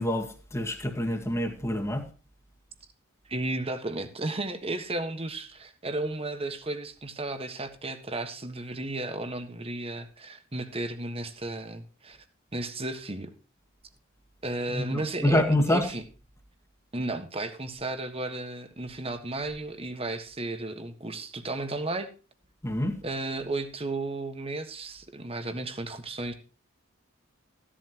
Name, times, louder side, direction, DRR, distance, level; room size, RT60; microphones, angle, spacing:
voice 1, 0.0-2.1 14.8-15.9 22.6-23.0, left 1 dB, 15° left, 2.0 m, -26 dB
voice 2, 3.3-12.2 12.5-13.3 14.4-16.0 16.9-22.1 23.0-26.3, right 2 dB, 25° right, 1.5 m, -34 dB
16.0 x 11.5 x 3.0 m
head